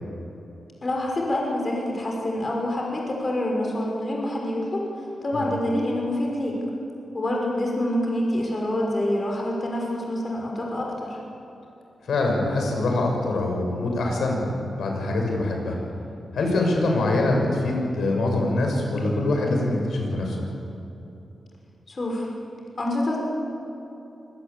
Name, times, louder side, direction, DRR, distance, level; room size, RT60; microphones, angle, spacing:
voice 1, 0.8-6.6 7.1-11.2 21.9-22.3 22.8-23.2, left 1 dB, 40° left, -1 dB, 6.2 m, -26 dB
voice 2, 12.0-15.8 16.3-20.4, left 2 dB, 80° left, 1 dB, 6.8 m, -24 dB
26.5 x 21.5 x 8.6 m, 2.9 s
cardioid pair, 80°, 0 cm